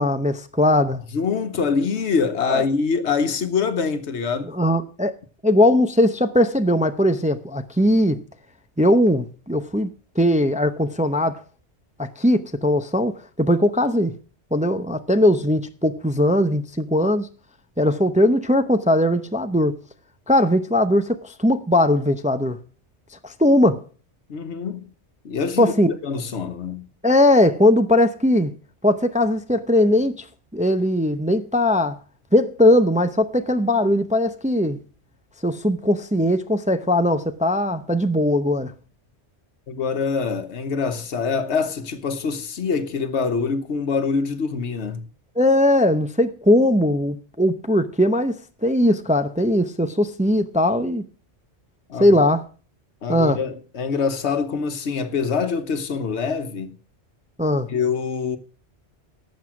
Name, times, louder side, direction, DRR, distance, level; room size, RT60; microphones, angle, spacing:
voice 1, 0.0-1.0 2.5-2.6 4.5-5.1 5.4-8.2 8.8-9.9 10.2-11.4 12.0-14.1 14.5-17.3 17.8-19.7 20.3-22.6 23.2-23.8 25.6-25.9 27.0-28.5 28.8-30.3 30.5-32.0 32.3-34.8 35.4-38.7 45.4-51.0 52.0-52.4 53.1-53.4 57.4-57.7, left 1 dB, 10° right, 0.5 m, -19 dB
voice 2, 1.1-4.5 24.3-24.9 25.2-26.9 39.7-45.1 51.9-52.2 53.0-56.8 57.7-58.4, left 5 dB, 75° left, 1.3 m, -25 dB
12.0 x 7.4 x 6.1 m
omnidirectional pair, 1.2 m